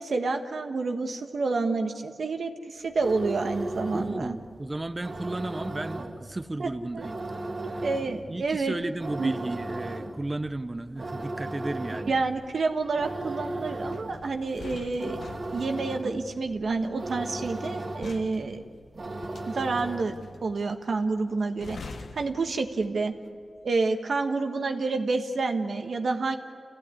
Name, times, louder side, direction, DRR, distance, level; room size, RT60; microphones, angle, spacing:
voice 1, 0.0-4.4 6.6-6.7 6.9-7.1 7.6-8.7 9.2-9.3 12.1-15.2 15.5-18.6 19.4-20.1 20.4-23.1 23.6-26.4, right 3 dB, 70° right, 5 dB, 1.4 m, -29 dB
sound 1, 2.8-20.3, right 2 dB, 55° right, 2.1 m, -37 dB
voice 2, 3.9-7.2 7.7-7.9 8.2-12.1, right 2 dB, 25° right, 9 dB, 0.8 m, -34 dB
sound 2, 13.9-23.2 23.5-23.8, left 4 dB, 85° left, 1.3 m, -46 dB
28.0 x 16.0 x 9.8 m, 2.2 s
wide cardioid pair, 80°, 0 cm